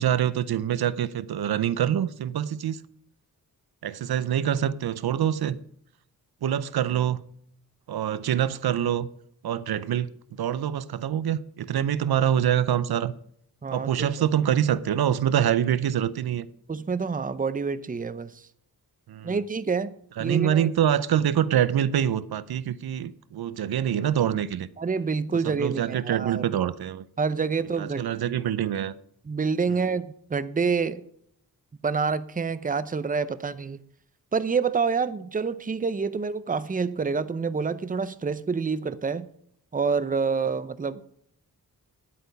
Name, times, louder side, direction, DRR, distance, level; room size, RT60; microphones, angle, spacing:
voice 1, 0.0-2.8 3.8-5.6 6.4-7.2 7.9-9.1 9.4-10.1 10.4-13.1 13.7-16.5 19.1-19.4 20.2-24.7 25.6-27.1 27.8-28.9, right 10 dB, 80° right, 0.6 m, -25 dB
voice 2, 13.6-14.1 16.7-18.4 19.2-19.9 20.2-20.7 24.8-26.5 27.2-28.0 29.2-31.0 31.8-33.8 34.3-39.3 39.7-41.0, right 5 dB, 20° right, 0.6 m, -27 dB
10.5 x 8.5 x 5.3 m
wide cardioid pair, 100°, 37 cm